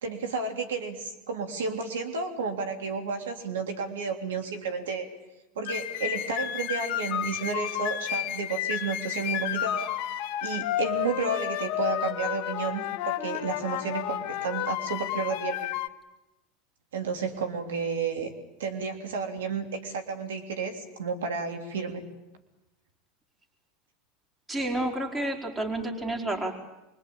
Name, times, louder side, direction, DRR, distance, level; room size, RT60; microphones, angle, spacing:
voice 1, 0.0-5.1 5.6-15.8 16.9-18.3 18.6-22.0, right 4 dB, 85° right, 6 dB, 3.2 m, -32 dB
sound 1, 5.7-15.9, left 12 dB, 65° left, 1.1 m, -31 dB
voice 2, 24.5-26.5, right 1 dB, 15° right, 2 dB, 4.5 m, -30 dB
25.0 x 23.5 x 8.7 m, 0.95 s
hypercardioid pair, 90°, 0 cm